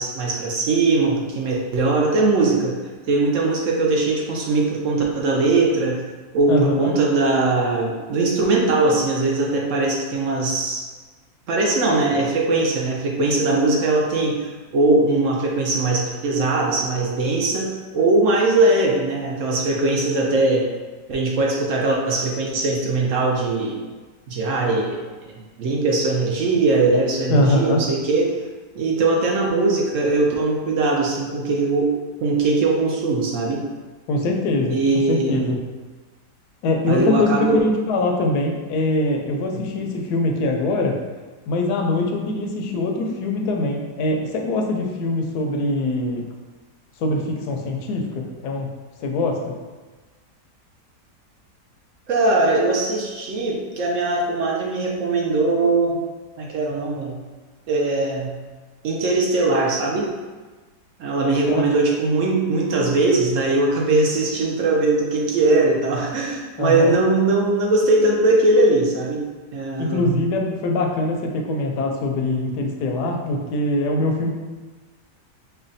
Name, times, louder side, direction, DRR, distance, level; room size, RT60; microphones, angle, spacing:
voice 1, 0.0-2.8 3.1-6.0 6.3-10.8 11.5-20.7 21.1-23.8 24.3-25.3 25.6-28.3 28.7-32.0 32.2-33.6 34.7-35.4 36.9-37.7 39.5-39.6 52.1-56.0 56.4-57.2 57.7-58.4 58.8-60.1 61.0-69.2 69.5-70.2, right 2 dB, 70° right, -1 dB, 0.7 m, -20 dB
voice 2, 6.5-6.9 27.3-27.8 34.1-34.8 35.1-35.6 36.6-41.0 41.5-46.2 47.0-48.7 49.0-49.6 61.5-61.6 66.6-67.0 69.8-74.3, left 2 dB, 75° left, 2 dB, 1.1 m, -23 dB
5.6 x 2.2 x 2.6 m, 1.3 s
omnidirectional pair, 1.8 m